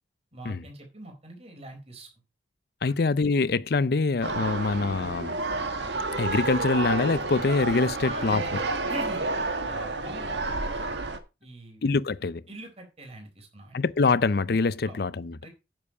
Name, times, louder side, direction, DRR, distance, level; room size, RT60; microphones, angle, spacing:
voice 1, 0.3-2.1 8.0-9.2 9.6-11.0 11.4-11.8 12.5-13.8 14.8-15.0 15.4-15.5, right 2 dB, 35° right, 4.1 m, -42 dB
voice 2, 2.8-5.4 6.2-8.4 11.8-12.4 13.7-15.4, left 4 dB, 55° left, 0.5 m, -24 dB
sound 1, 4.2-11.2, right 3 dB, 70° right, 1.7 m, -30 dB
9.7 x 7.5 x 5.6 m
head